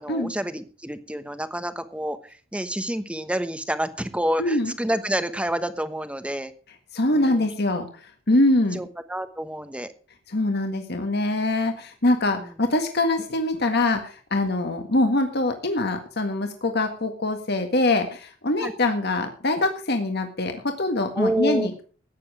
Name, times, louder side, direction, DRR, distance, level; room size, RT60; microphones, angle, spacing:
voice 1, 0.0-6.5 7.1-7.5 8.7-9.9 12.3-12.6 18.6-18.7 21.1-21.7, equal, 5° right, 11 dB, 1.1 m, -28 dB
voice 2, 4.4-4.7 6.9-8.8 10.3-21.8, left 2 dB, 55° left, 5 dB, 1.7 m, -24 dB
15.0 x 9.7 x 5.0 m, 0.39 s
head